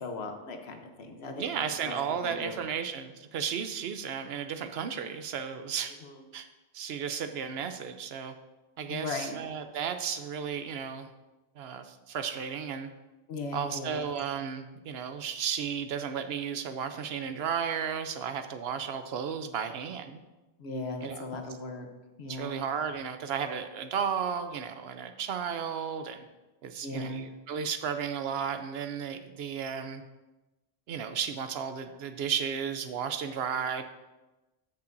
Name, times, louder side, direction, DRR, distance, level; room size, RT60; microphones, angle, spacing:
voice 1, 0.0-1.5 1.8-1.9 2.2-2.6 6.0-6.2 8.9-9.4 13.3-14.0 20.6-21.9 22.2-22.6 26.8-27.2, left 3 dB, 75° left, 5 dB, 1.2 m, -37 dB
voice 2, 1.4-5.9 6.3-6.5 6.7-8.3 8.8-11.1 11.6-12.9 13.5-20.2 21.0-21.3 22.3-26.3 26.6-30.0 30.9-33.8, right 7 dB, 75° right, 9 dB, 0.8 m, -34 dB
13.0 x 5.6 x 2.6 m, 1.1 s
omnidirectional pair, 1.1 m